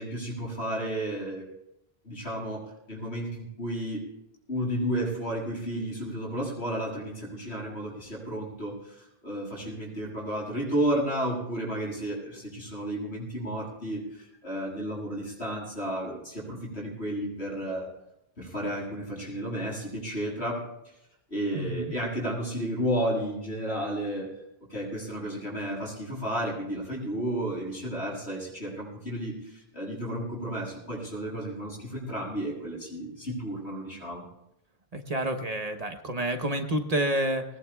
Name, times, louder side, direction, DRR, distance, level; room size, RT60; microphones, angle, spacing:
voice 1, 0.0-1.5 2.0-4.0 4.5-17.9 18.4-20.9 21.3-24.3 24.7-34.2, right 1 dB, 90° left, -4 dB, 7.9 m, -32 dB
voice 2, 21.5-21.9 34.9-37.4, right 1 dB, 40° right, 5 dB, 1.1 m, -29 dB
21.5 x 20.5 x 2.4 m, 0.84 s
omnidirectional pair, 1.1 m